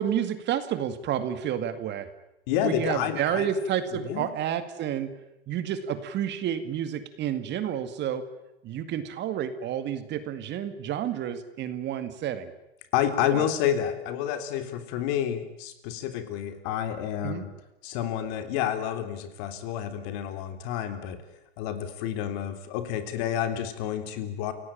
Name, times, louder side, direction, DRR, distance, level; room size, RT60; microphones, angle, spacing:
voice 1, 0.0-2.1 2.6-5.1 5.5-8.3 8.6-12.5 13.3-13.5 17.2-17.4, right 9 dB, 35° right, 11 dB, 2.1 m, -30 dB
voice 2, 2.5-3.5 3.9-4.3 12.9-17.5 17.8-21.2 21.6-24.5, left 10 dB, 50° left, 8 dB, 3.5 m, -29 dB
29.0 x 17.5 x 8.8 m, 0.91 s
hypercardioid pair, 125°, 32 cm